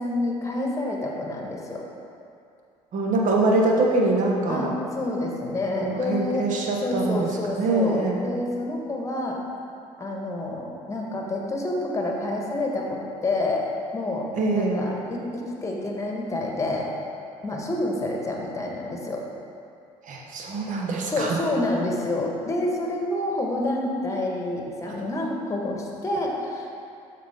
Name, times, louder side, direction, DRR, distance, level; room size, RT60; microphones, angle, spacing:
voice 1, 0.0-1.8 4.5-6.5 6.8-9.4 10.0-13.6 13.9-16.9 17.4-19.2 21.1-26.7, left 2 dB, 15° left, -1 dB, 1.4 m, -28 dB
voice 2, 2.9-4.7 5.8-8.2 14.4-14.8 20.1-21.4, right 2 dB, 45° right, 0 dB, 1.2 m, -24 dB
13.0 x 4.3 x 3.6 m, 2.5 s
figure-of-eight pair, 60°, 19 cm